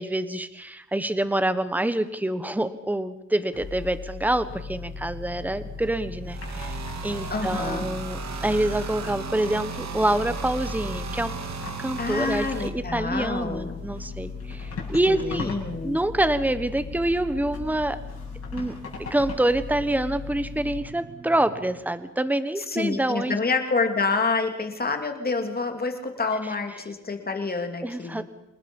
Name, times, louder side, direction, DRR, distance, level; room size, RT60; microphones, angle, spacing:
voice 1, 0.0-11.3 11.8-15.5 15.8-18.0 18.5-18.7 19.1-23.4 27.8-28.2, right 1 dB, 5° right, 12 dB, 1.3 m, -26 dB
sound 1, 3.5-20.8, left 6 dB, 50° left, 7.2 m, -38 dB
sound 2, 4.5-21.8, right 4 dB, 45° right, 7.3 m, -45 dB
sound 3, 6.2-12.7, right 6 dB, 65° right, 2.8 m, -35 dB
voice 2, 7.3-7.9 12.0-13.8 15.1-16.0 22.6-28.2, left 4 dB, 30° left, 5 dB, 2.9 m, -28 dB
27.5 x 20.5 x 5.5 m, 0.92 s
wide cardioid pair, 130°, 29 cm